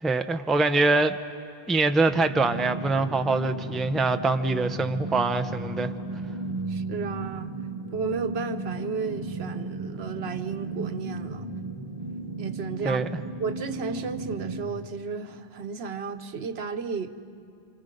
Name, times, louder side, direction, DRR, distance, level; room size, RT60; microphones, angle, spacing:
voice 1, 0.0-1.2 1.7-5.9 12.8-13.1, right 3 dB, ahead, 8 dB, 0.4 m, -24 dB
sound 1, 2.1-14.6, right 2 dB, 25° right, 1.4 m, -35 dB
voice 2, 6.7-7.5 7.9-11.5 12.4-13.1 13.4-17.1, right 5 dB, 85° right, 9 dB, 1.2 m, -33 dB
29.0 x 26.5 x 5.2 m, 2.8 s
omnidirectional pair, 1.0 m